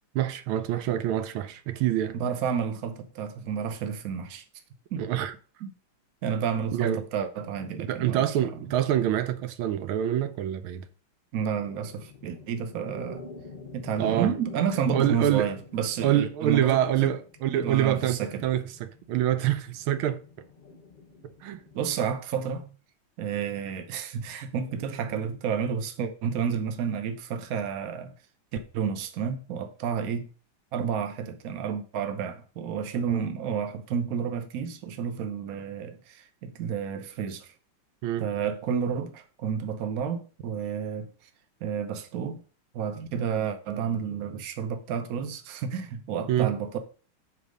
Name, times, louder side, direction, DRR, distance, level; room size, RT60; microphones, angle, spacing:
voice 1, 0.1-2.2 5.0-5.3 6.7-7.0 7.7-10.9 14.0-14.3 14.9-15.5 16.0-20.2 21.4-21.6 33.1-33.2 38.0-38.3 46.3-46.5, right 11 dB, 85° right, 1.5 m, -26 dB
voice 2, 2.1-4.4 4.9-5.0 5.6-5.7 6.2-8.5 11.3-13.2 13.7-17.1 17.5-18.4 21.7-22.7 23.2-28.1 28.7-30.3 30.7-37.5 38.2-41.1 41.6-42.4 42.7-46.8, right 7 dB, 55° right, 1.1 m, -30 dB
sound 1, 11.6-21.8, left 3 dB, 65° left, 0.4 m, -48 dB
7.5 x 4.2 x 5.1 m
omnidirectional pair, 2.2 m